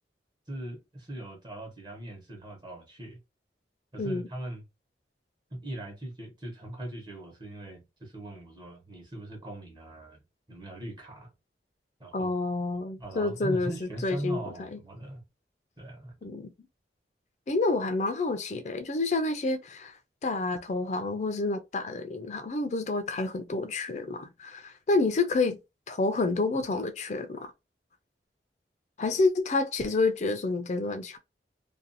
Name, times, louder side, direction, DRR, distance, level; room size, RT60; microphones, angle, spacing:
voice 1, 0.5-3.2 3.9-4.6 5.5-10.2 10.5-11.3 12.0-12.3 13.0-15.2 15.8-16.2, right 1 dB, 25° right, 0.9 m, -40 dB
voice 2, 12.1-14.8 16.2-16.5 17.5-25.6 25.9-27.5 29.0-31.2, left 3 dB, 40° left, 0.4 m, -29 dB
2.5 x 2.2 x 2.5 m
head